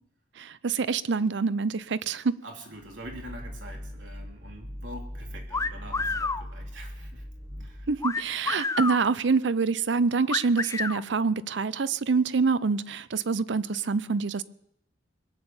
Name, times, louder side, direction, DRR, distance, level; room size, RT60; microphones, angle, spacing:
voice 1, 0.4-2.4 7.9-14.4, right 4 dB, 70° right, 0.6 m, -26 dB
voice 2, 2.4-7.3 7.6-7.9, right 1 dB, 85° right, 3.3 m, -45 dB
sound 1, 2.8-8.2, equal, 35° right, 1.5 m, -40 dB
sound 2, 5.5-6.4 8.0-9.0 10.3-11.0, left 3 dB, 15° left, 0.5 m, -29 dB
21.5 x 8.9 x 7.1 m
head